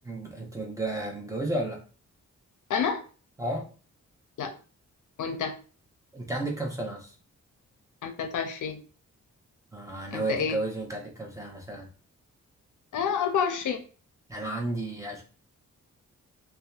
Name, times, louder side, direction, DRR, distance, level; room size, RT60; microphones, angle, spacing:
voice 1, 0.0-1.8 3.4-3.7 6.1-7.1 9.7-11.9 14.3-15.2, right 2 dB, 10° right, -1 dB, 0.7 m, -32 dB
voice 2, 2.7-3.0 4.4-4.5 5.2-5.5 8.0-8.8 10.1-10.6 12.9-13.8, left 7 dB, 75° left, 6 dB, 0.5 m, -28 dB
2.7 x 2.2 x 2.2 m, 0.38 s
cardioid pair, 75°, 31 cm